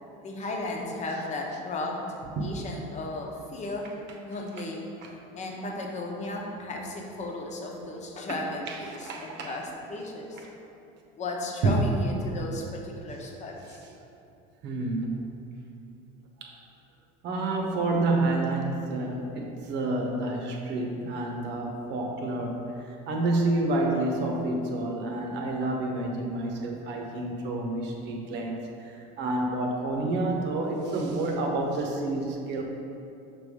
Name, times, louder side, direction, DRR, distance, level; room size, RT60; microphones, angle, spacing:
voice 1, 0.2-2.0 2.4-3.9 4.2-4.9 5.3-10.4 11.2-13.8, left 2 dB, 35° left, 0 dB, 1.0 m, -35 dB
voice 2, 8.7-9.6 10.4-10.5 11.6-11.9 14.6-15.2 16.4-16.6 17.2-32.6, right 2 dB, 60° right, 1 dB, 1.1 m, -29 dB
6.1 x 3.4 x 5.2 m, 2.7 s
supercardioid pair, 110°, 21 cm